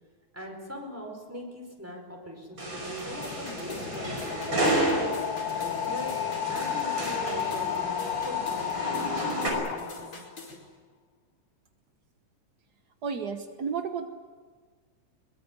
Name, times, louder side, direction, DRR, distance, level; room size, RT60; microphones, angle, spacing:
voice 1, 0.3-5.1 5.6-6.2 6.5-10.0 10.5-10.6, left 1 dB, 5° right, 2 dB, 4.8 m, -41 dB
sound 1, 2.6-10.3, left 9 dB, 65° left, 2.0 m, -33 dB
sound 2, 2.6-9.5, right 1 dB, 35° right, 6.0 m, -32 dB
sound 3, 3.0-10.6, left 3 dB, 45° left, 5.8 m, -47 dB
voice 2, 13.0-14.1, right 6 dB, 75° right, 7 dB, 0.9 m, -32 dB
22.5 x 22.5 x 9.6 m, 1.5 s
omnidirectional pair, 3.5 m